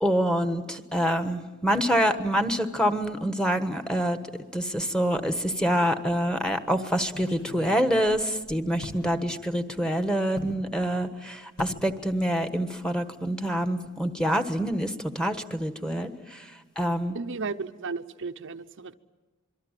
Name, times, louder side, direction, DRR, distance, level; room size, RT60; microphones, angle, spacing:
voice 1, 0.0-4.2 4.5-16.1 16.8-17.2, equal, 5° left, 8 dB, 1.4 m, -26 dB
sound 1, 6.1-6.2 7.0-9.1 10.4-10.6 11.6-11.9 12.2-12.5 12.8-12.9, left 1 dB, 80° left, 5.4 m, -42 dB
voice 2, 17.1-18.9, right 4 dB, 60° right, 7 dB, 0.8 m, -34 dB
26.5 x 23.5 x 9.1 m, 1.2 s
head